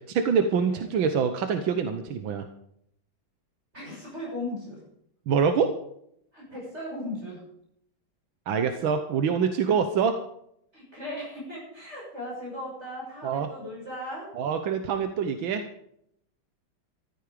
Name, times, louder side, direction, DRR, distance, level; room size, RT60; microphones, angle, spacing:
voice 1, 0.0-2.5 5.3-5.7 8.5-10.2 13.2-13.5 14.4-15.6, right 6 dB, 90° right, 8 dB, 1.8 m, -25 dB
voice 2, 3.7-4.8 6.3-7.4 10.7-14.3, left 1 dB, 35° right, -4 dB, 6.8 m, -37 dB
14.5 x 14.0 x 5.1 m, 0.73 s
omnidirectional pair, 2.1 m